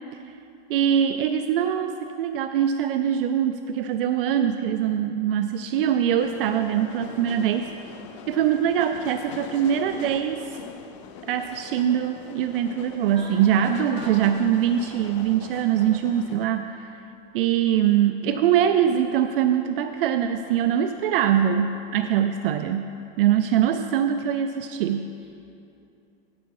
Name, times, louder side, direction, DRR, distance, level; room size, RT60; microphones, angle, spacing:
voice 1, 0.7-7.7 8.3-10.5 11.2-16.9 17.3-22.9 23.2-25.1, right 9 dB, 65° right, 8 dB, 0.5 m, -23 dB
sound 1, 6.2-16.5, left 6 dB, 30° left, 0.4 m, -42 dB
voice 2, 13.1-14.3 25.2-25.3, right 3 dB, 15° right, -3 dB, 1.3 m, -42 dB
9.1 x 8.4 x 4.7 m, 2.7 s
supercardioid pair, 170°, 30 cm